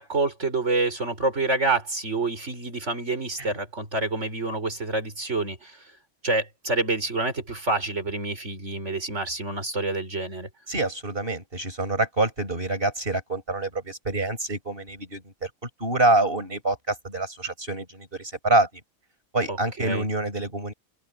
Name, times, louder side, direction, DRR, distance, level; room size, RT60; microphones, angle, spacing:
voice 1, 0.0-5.8 6.2-10.5 19.5-20.1, right 3 dB, 90° right, 5.1 m, -27 dB
voice 2, 10.7-18.7 19.3-20.7, right 2 dB, 50° right, 6.5 m, -26 dB
omnidirectional pair, 1.2 m